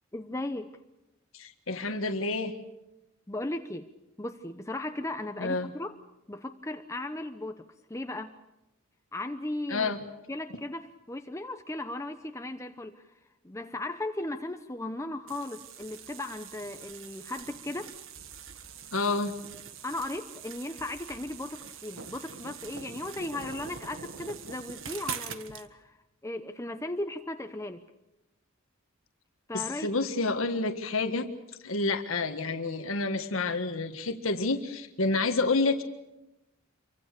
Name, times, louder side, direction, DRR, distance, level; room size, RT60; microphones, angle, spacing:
voice 1, 0.1-0.7 3.3-3.9 4.2-6.0 6.3-8.3 9.1-9.9 10.3-13.0 13.4-17.9 19.8-26.0 26.2-27.8 29.5-29.9, left 2 dB, 15° left, 7 dB, 0.9 m, -36 dB
voice 2, 1.3-2.5 5.4-5.7 9.7-10.0 18.9-19.3 29.5-31.3 31.6-35.8, left 3 dB, 85° left, 7 dB, 1.7 m, -29 dB
sound 1, 15.3-25.7, right 7 dB, 75° right, 1.6 m, -43 dB
27.5 x 24.0 x 6.8 m, 0.95 s
head